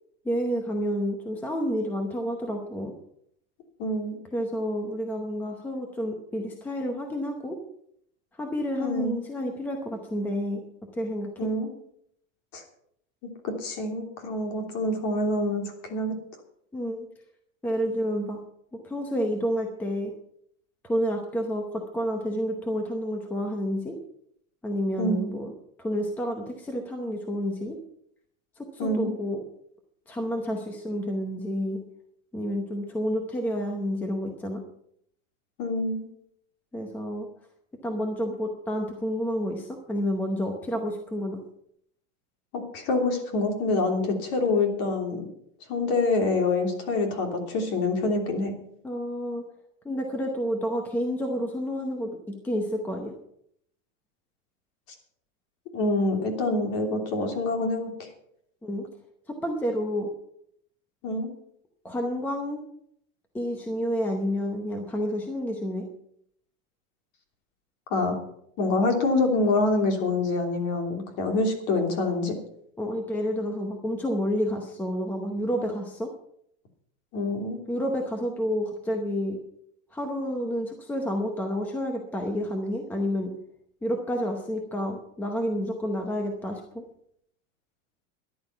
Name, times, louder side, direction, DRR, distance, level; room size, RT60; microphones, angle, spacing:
voice 1, 0.2-2.9 4.3-7.6 8.4-10.6 10.9-11.3 16.7-17.1 17.6-18.4 18.8-20.1 20.8-23.9 24.6-25.5 25.8-27.8 28.6-29.4 30.1-31.8 32.3-34.6 36.7-37.3 37.8-41.4 48.8-49.4 49.8-52.2 52.4-53.1 58.6-58.8 59.3-60.1 61.8-62.6 63.3-65.8 72.8-76.1 77.7-79.4 79.9-83.3 83.8-86.6, equal, 5° left, 3 dB, 0.8 m, -29 dB
voice 2, 3.8-4.2 8.8-9.2 11.4-11.7 12.5-12.6 13.4-16.1 25.0-25.3 28.8-29.1 35.6-36.1 42.5-45.3 45.7-48.5 55.7-58.1 61.0-61.3 67.9-68.1 68.6-72.4 77.1-77.6, left 2 dB, 40° left, 4 dB, 3.1 m, -26 dB
14.0 x 11.0 x 5.7 m, 0.70 s
supercardioid pair, 175°, 39 cm